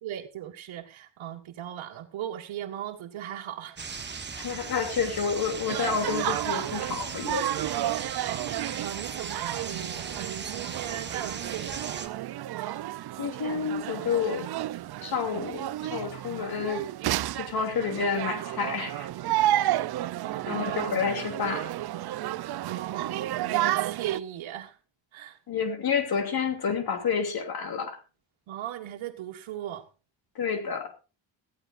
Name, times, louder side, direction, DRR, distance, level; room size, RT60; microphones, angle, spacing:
voice 1, 0.0-3.8 8.3-8.4 8.8-12.1 20.2-21.0 22.7-24.8 25.1-25.4 28.5-29.9, right 11 dB, 85° right, -1 dB, 1.7 m, -38 dB
sound 1, 3.8-12.1, right 5 dB, 25° right, 1.3 m, -38 dB
voice 2, 4.3-7.5 13.2-14.5 15.0-16.9 17.3-19.1 19.6-19.7 20.5-21.7 25.5-28.0 30.3-30.9, left 6 dB, 50° left, 6 dB, 2.8 m, -29 dB
sound 2, 5.7-24.2, right 14 dB, 55° right, 0.6 m, -31 dB
20.0 x 14.0 x 2.5 m, 0.32 s
cardioid pair, 175°, 46 cm